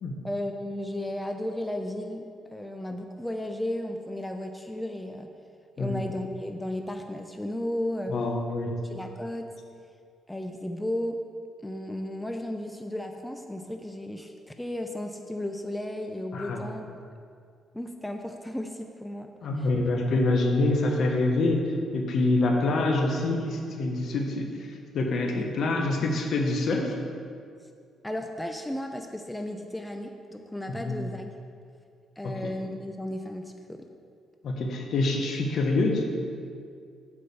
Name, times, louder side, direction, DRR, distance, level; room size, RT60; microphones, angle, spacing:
voice 1, 0.2-5.3 5.8-8.1 8.9-9.5 10.3-11.2 11.6-16.9 17.7-19.3 19.6-19.7 25.3-25.5 28.0-31.3 32.2-33.9, left 1 dB, 5° left, 4 dB, 0.6 m, -34 dB
voice 2, 8.1-8.8 16.3-16.6 19.4-27.0 30.7-31.0 32.2-32.3 34.4-36.0, left 2 dB, 65° left, 2 dB, 1.3 m, -26 dB
8.6 x 5.1 x 6.8 m, 2.3 s
cardioid pair, 90°, 0 cm